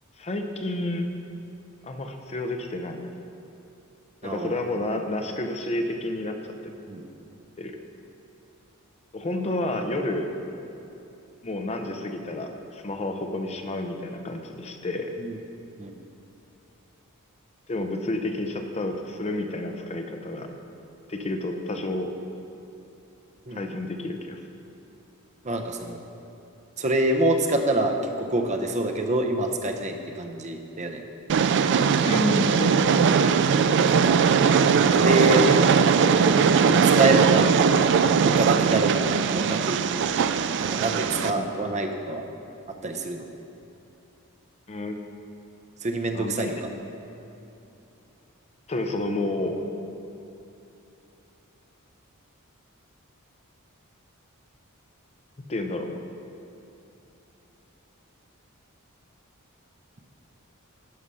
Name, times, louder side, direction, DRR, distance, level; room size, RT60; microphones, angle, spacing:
voice 1, 0.2-1.1 1.8-3.1 4.2-6.7 7.6-7.8 9.1-10.3 11.4-15.1 17.7-20.5 21.1-22.1 23.5-24.4 32.0-32.9 41.4-41.5 44.7-45.0 46.1-46.5 48.7-49.6 55.5-56.0, left 1 dB, 30° left, 5 dB, 0.6 m, -30 dB
voice 2, 4.2-4.6 6.9-7.0 15.2-15.4 15.8-16.0 23.5-23.8 25.4-26.0 26.8-31.0 33.9-34.2 35.0-35.5 36.7-37.6 38.2-42.3 42.8-43.3 45.8-46.7, right 2 dB, 35° right, 4 dB, 0.7 m, -26 dB
Train, 31.3-41.3, right 6 dB, 55° right, 0.3 m, -20 dB
11.5 x 4.9 x 5.6 m, 2.9 s
head